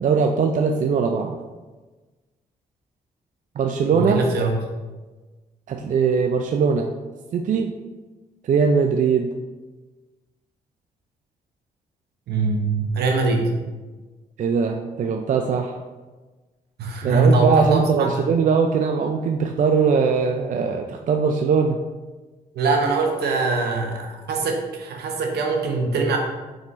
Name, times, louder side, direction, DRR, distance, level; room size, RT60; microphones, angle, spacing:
voice 1, 0.0-1.3 3.6-4.2 5.7-6.9 7.3-7.7 8.4-9.3 14.4-15.8 17.0-21.8, right 5 dB, 50° right, 4 dB, 0.4 m, -20 dB
voice 2, 3.9-4.6 12.3-13.5 16.8-18.3 22.5-26.2, right 3 dB, 75° right, 2 dB, 0.8 m, -22 dB
3.9 x 3.8 x 3.0 m, 1.2 s
supercardioid pair, 50°, 17 cm